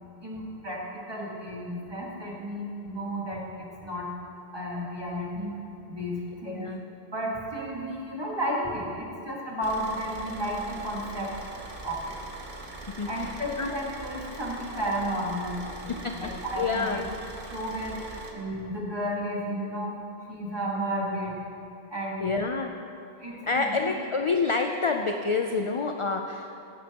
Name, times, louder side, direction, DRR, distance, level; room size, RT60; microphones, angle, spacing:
voice 1, 0.2-4.1 4.5-5.5 5.9-6.7 7.1-11.3 11.8-12.1 13.1-17.0 17.5-19.9 20.3-21.3 21.9-22.3 23.2-23.9, equal, 25° right, -4 dB, 1.8 m, -33 dB
voice 2, 6.5-6.8 12.9-13.8 15.9-17.1 22.2-22.7 23.4-26.6, left 4 dB, 45° left, 4 dB, 0.4 m, -28 dB
Car / Idling, 9.6-18.3, right 2 dB, 50° right, 1.3 m, -42 dB
17.0 x 9.3 x 2.9 m, 2.8 s
omnidirectional pair, 1.0 m